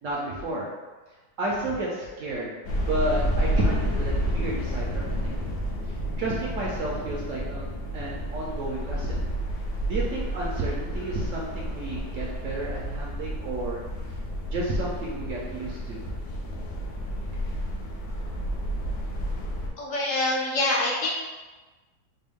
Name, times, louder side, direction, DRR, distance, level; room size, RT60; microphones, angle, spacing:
voice 1, 0.0-0.7 1.4-5.3 6.2-7.7 7.9-9.2 9.9-13.8 14.5-16.0, right 2 dB, 65° right, -4 dB, 0.8 m, -31 dB
sound 1, 2.6-19.7, equal, 80° left, 1.2 m, -30 dB
voice 2, 19.8-21.2, left 2 dB, 60° left, -5 dB, 1.0 m, -25 dB
4.4 x 2.2 x 3.4 m, 1.2 s
omnidirectional pair, 1.8 m